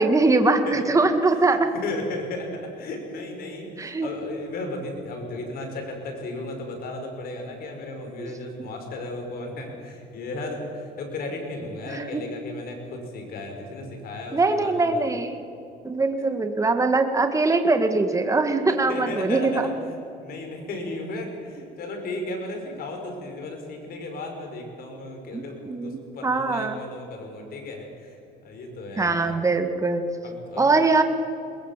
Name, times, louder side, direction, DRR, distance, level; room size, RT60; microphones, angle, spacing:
voice 1, 0.0-1.7 3.8-4.1 8.2-8.3 11.9-12.2 14.3-15.4 15.8-19.5 25.3-26.8 29.0-30.0 30.6-31.0, right 3 dB, 20° right, 7 dB, 2.0 m, -22 dB
voice 2, 1.2-15.0 18.7-19.7 20.2-29.4 30.2-30.7, left 2 dB, 60° left, 3 dB, 5.8 m, -35 dB
21.5 x 21.5 x 7.5 m, 2.7 s
cardioid pair, 110°, 17 cm